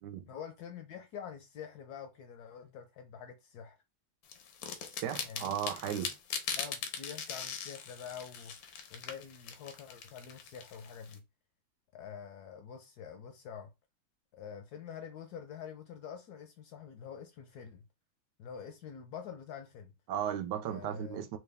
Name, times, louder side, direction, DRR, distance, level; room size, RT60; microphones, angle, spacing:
voice 1, 0.3-3.8 5.2-5.6 6.5-8.5 8.9-11.2 11.9-13.7 14.3-17.8 18.4-19.9 20.6-21.3, left 7 dB, 70° left, 1.0 m, -46 dB
sound 1, 4.3-11.1, left 7 dB, 85° left, 1.5 m, -41 dB
voice 2, 5.0-6.1 20.1-21.4, right 10 dB, 75° right, 1.1 m, -35 dB
4.5 x 2.3 x 3.3 m
omnidirectional pair, 2.0 m